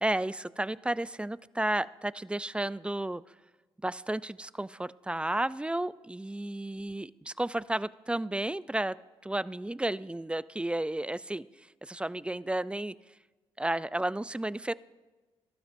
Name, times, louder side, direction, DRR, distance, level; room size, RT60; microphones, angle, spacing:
voice 1, 0.0-3.2 3.8-9.0 9.2-11.5 11.8-12.9 13.6-14.7, right 1 dB, 10° right, 18 dB, 0.3 m, -32 dB
21.5 x 12.5 x 2.6 m, 1.2 s
supercardioid pair, 60°, 11 cm